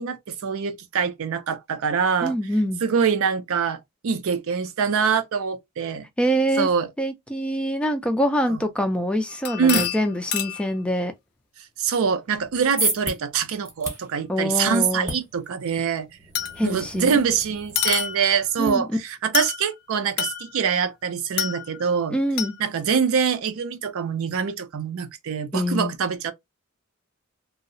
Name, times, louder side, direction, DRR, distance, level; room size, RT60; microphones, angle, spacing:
voice 1, 0.0-2.4 2.8-6.1 6.6-6.9 8.5-8.6 9.6-9.9 11.8-16.1 16.6-22.2 22.6-26.3, right 6 dB, 65° right, 0.4 m, -24 dB
voice 2, 2.2-2.8 6.2-6.7 7.0-11.1 14.3-15.1 16.6-17.1 18.6-19.0 22.1-22.5 25.5-25.9, equal, 5° left, 0.3 m, -24 dB
sound 1, 9.3-10.7 14.1-14.2 16.3-16.9 17.8-18.5 19.3-19.7 20.2-20.8 21.4-21.9 22.4-22.6, left 9 dB, 75° left, 0.5 m, -28 dB
sound 2, 12.4-18.7, right 2 dB, 15° right, 0.8 m, -34 dB
2.7 x 2.0 x 2.5 m
head